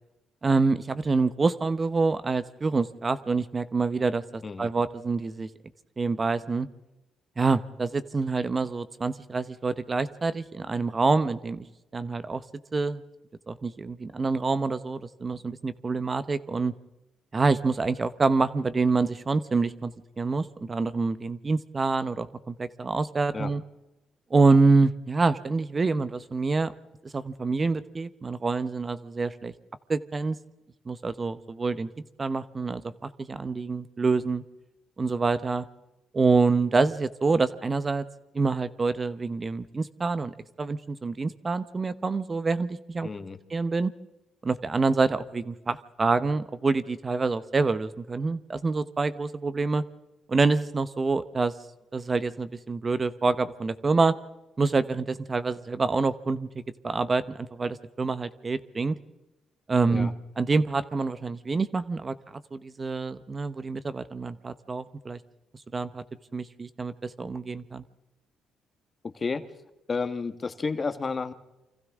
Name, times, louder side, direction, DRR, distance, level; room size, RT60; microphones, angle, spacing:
voice 1, 0.4-5.5 6.0-6.7 7.4-11.6 11.9-12.4 12.7-13.0 13.5-16.7 17.3-23.6 24.3-26.7 27.0-29.5 29.9-30.4 30.9-31.9 32.2-34.4 35.0-35.7 36.1-38.0 38.3-43.1 43.5-43.9 44.4-49.8 50.3-51.5 51.9-54.1 54.6-58.9 59.7-65.2 65.7-66.0 66.3-67.8, right 4 dB, 30° right, 13 dB, 1.0 m, -26 dB
voice 2, 43.0-43.4 59.9-60.1 69.1-69.4 69.9-71.3, left 4 dB, 35° left, 9 dB, 1.6 m, -31 dB
29.0 x 25.5 x 3.7 m, 0.99 s
cardioid pair, 90°, 0 cm